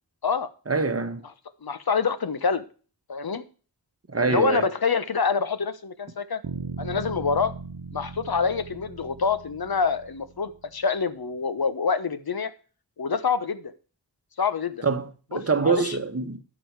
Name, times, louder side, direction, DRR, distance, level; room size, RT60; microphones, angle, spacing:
voice 1, 0.7-1.2 4.1-4.7 14.8-16.4, right 4 dB, 35° right, 1.3 m, -25 dB
voice 2, 1.6-2.6 3.1-3.4 4.2-6.4 6.8-7.5 7.9-12.5 13.0-13.7 14.4-14.8 15.3-16.0, left 5 dB, 55° left, 1.1 m, -26 dB
sound 1, 6.4-10.5, right 4 dB, 55° right, 1.1 m, -38 dB
12.0 x 6.3 x 4.7 m
wide cardioid pair, 75°, 43 cm